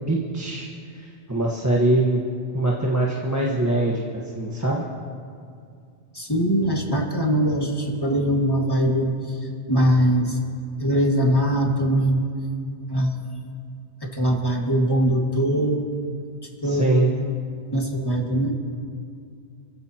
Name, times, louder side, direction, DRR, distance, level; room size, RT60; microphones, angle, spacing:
voice 1, 0.1-0.7 0.9-2.2 2.5-4.8 16.6-17.1, right 2 dB, 15° right, -4 dB, 1.4 m, -23 dB
voice 2, 6.1-9.1 9.7-10.4 10.8-12.2 12.9-13.4 14.1-15.9 16.6-16.8 17.7-18.5, equal, 20° left, 0 dB, 2.0 m, -21 dB
30.0 x 15.5 x 2.9 m, 2.3 s
omnidirectional pair, 1.1 m